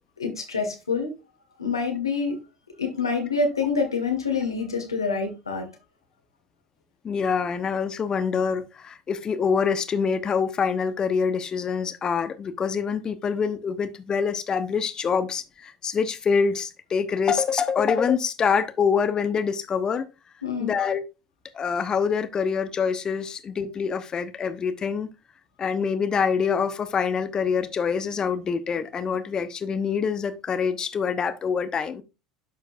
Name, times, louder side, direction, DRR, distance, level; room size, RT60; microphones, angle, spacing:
voice 1, 0.2-1.1 1.6-2.4 2.8-5.7 20.4-20.7, left 4 dB, 90° left, 1.8 m, -26 dB
voice 2, 7.0-20.1 20.6-21.0 21.5-25.1 25.6-32.0, left 6 dB, 30° left, 1.0 m, -25 dB
12.0 x 4.5 x 2.6 m
hypercardioid pair, 70°, 2 cm